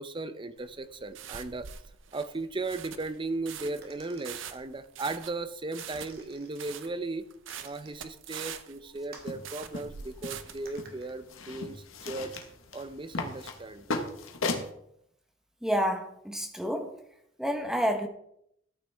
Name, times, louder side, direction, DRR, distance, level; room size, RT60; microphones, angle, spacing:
voice 1, 0.0-1.7 2.1-7.3 7.6-12.3 12.7-14.0, right 3 dB, 25° right, 12 dB, 0.6 m, -36 dB
sound 1, 0.6-10.7, right 8 dB, 70° right, 0.8 m, -44 dB
sound 2, 3.8-4.6 5.8-6.6 7.5-8.0 9.1-9.4 10.7-11.2 12.3-12.5, right 4 dB, 50° right, 2.2 m, -53 dB
sound 3, 9.2-14.7, left 3 dB, 85° left, 1.5 m, -37 dB
voice 2, 15.6-16.9 17.4-18.1, equal, 5° right, 5 dB, 1.1 m, -29 dB
13.5 x 9.1 x 3.5 m, 0.75 s
head